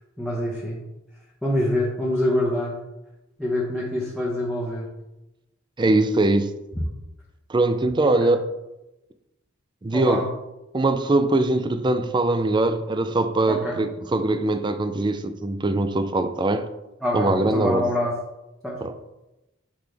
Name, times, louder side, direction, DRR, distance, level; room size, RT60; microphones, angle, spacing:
voice 1, 0.2-0.8 1.4-2.7 3.4-4.9 8.0-8.4 9.9-10.2 13.5-13.8 17.0-18.1 18.6-18.8, left 1 dB, ahead, 1.0 m, -25 dB
voice 2, 5.8-6.5 7.5-8.5 9.8-10.2 10.7-16.7 17.1-17.9 18.8-18.9, right 2 dB, 25° right, 0.4 m, -22 dB
6.0 x 5.0 x 3.4 m
head